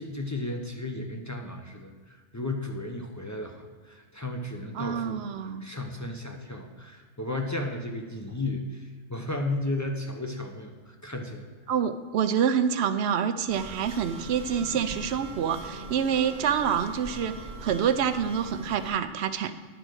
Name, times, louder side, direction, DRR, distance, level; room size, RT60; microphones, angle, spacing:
voice 1, 0.0-11.5, left 2 dB, 20° left, 2 dB, 0.5 m, -34 dB
voice 2, 4.7-5.7 11.7-17.3 17.6-19.5, right 8 dB, 65° right, 11 dB, 0.8 m, -27 dB
sound 1, 13.5-18.9, right 3 dB, 40° right, 1.2 m, -41 dB
10.5 x 5.0 x 6.2 m, 1.5 s
omnidirectional pair, 1.3 m